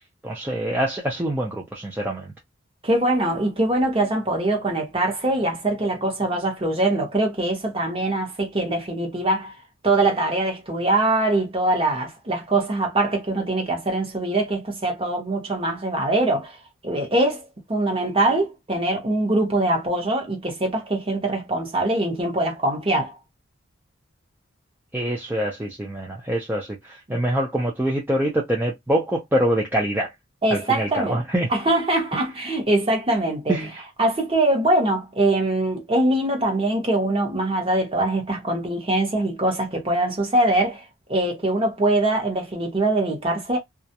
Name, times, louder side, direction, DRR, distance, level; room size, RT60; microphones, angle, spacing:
voice 1, 0.2-2.3 24.9-30.1 30.5-31.5 33.5-33.8, right 1 dB, 10° right, 0.4 m, -25 dB
voice 2, 2.8-9.5 9.8-16.6 16.8-23.2 30.4-31.2 31.5-33.6 34.0-40.8 41.1-43.6, right 2 dB, 25° right, 0.8 m, -23 dB
2.3 x 2.0 x 2.7 m
head